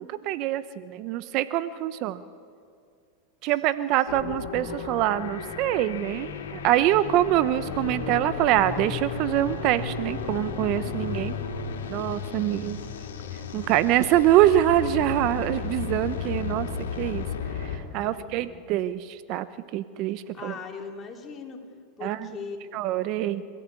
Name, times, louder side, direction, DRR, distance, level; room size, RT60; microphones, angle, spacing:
voice 1, 0.0-2.2 3.4-11.3 11.9-12.8 13.5-16.7 17.0-17.2 17.6-19.5 19.7-20.5 22.0-22.2 22.7-23.4, right 13 dB, 50° right, 14 dB, 0.8 m, -25 dB
sound 1, 4.1-17.8, left 6 dB, 85° left, 3.1 m, -34 dB
voice 2, 18.0-18.6 20.3-21.6 22.0-22.8, left 5 dB, 30° left, 2 dB, 3.5 m, -40 dB
28.0 x 15.0 x 8.4 m, 2.3 s
hypercardioid pair, 115°, 0 cm